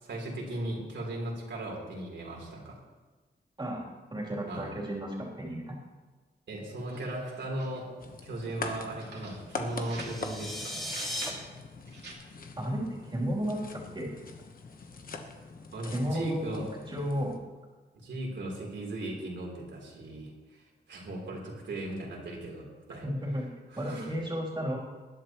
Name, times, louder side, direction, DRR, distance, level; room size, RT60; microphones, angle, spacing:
voice 1, 0.0-2.8 4.5-4.7 6.5-7.9 8.2-10.8 15.7-16.7 18.0-23.0 23.7-24.1, right 1 dB, 90° right, -2 dB, 3.6 m, -37 dB
voice 2, 3.6-5.8 12.6-14.1 15.8-17.3 23.0-23.5 23.8-24.8, equal, 25° right, -4 dB, 3.3 m, -33 dB
sound 1, 6.8-7.9 8.5-10.3 10.6-11.4 11.9-12.1, right 3 dB, 70° right, 2.4 m, -47 dB
sound 2, 8.0-17.4, left 4 dB, 50° left, 1.2 m, -43 dB
sound 3, 9.7-11.3, equal, ahead, 2.0 m, -37 dB
19.5 x 11.5 x 3.1 m, 1.3 s
wide cardioid pair, 155°, 18 cm